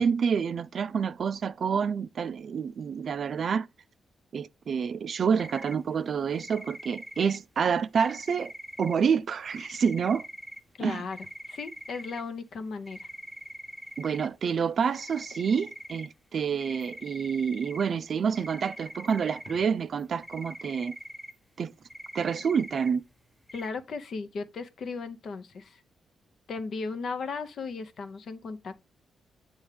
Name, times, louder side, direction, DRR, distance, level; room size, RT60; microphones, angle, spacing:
voice 1, 0.0-3.7 4.3-8.5 8.8-10.3 10.8-11.0 14.0-20.9 21.6-21.7 22.1-23.0, right 6 dB, 55° right, 0.4 m, -28 dB
sound 1, 5.4-5.8 6.3-7.4 8.0-8.9 9.5-10.6 11.1-12.2 12.9-14.3 14.9-16.1 16.6-17.8 18.3-19.6 20.0-21.3 21.9-22.9 23.5-23.7, equal, ahead, 1.0 m, -43 dB
voice 2, 10.8-13.1 23.5-25.8 26.5-28.8, left 4 dB, 60° left, 0.8 m, -36 dB
8.7 x 3.5 x 3.3 m
cardioid pair, 110°, 0 cm